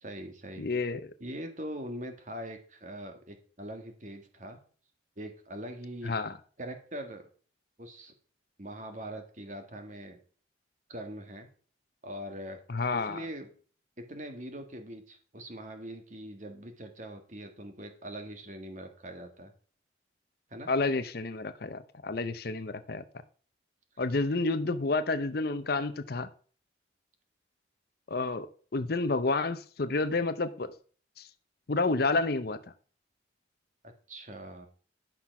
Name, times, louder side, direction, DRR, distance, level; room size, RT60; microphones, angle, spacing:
voice 1, 0.0-0.7 1.2-4.6 5.2-6.1 6.6-7.3 7.8-8.1 8.6-10.2 10.9-11.5 12.0-12.6 12.9-13.5 14.0-19.5 20.5-20.7 33.8-34.7, right 1 dB, 40° right, 6 dB, 1.7 m, -42 dB
voice 2, 0.6-1.1 6.0-6.3 12.7-13.2 20.7-23.0 24.0-26.3 28.1-28.5 28.7-30.7 31.2-31.3 31.7-32.6, left 3 dB, 55° left, 11 dB, 0.7 m, -30 dB
12.0 x 5.9 x 5.9 m, 0.43 s
head